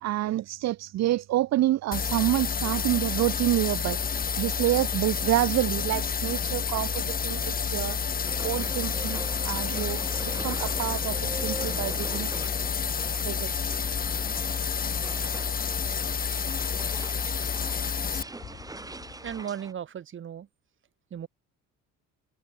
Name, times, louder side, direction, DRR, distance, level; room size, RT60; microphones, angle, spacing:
voice 1, 0.0-4.0 4.4-8.0 8.4-12.3 13.2-13.5, right 15 dB, 60° right, 1.0 m, -28 dB
sound 1, 1.9-18.2, left 6 dB, 30° left, 1.7 m, -29 dB
sound 2, 5.9-19.4, left 9 dB, 45° left, 4.8 m, -53 dB
sound 3, 8.2-19.7, right 2 dB, 10° right, 2.5 m, -42 dB
voice 2, 19.2-20.5 21.1-21.3, right 9 dB, 40° right, 2.5 m, -36 dB
cardioid pair, 135°, 30 cm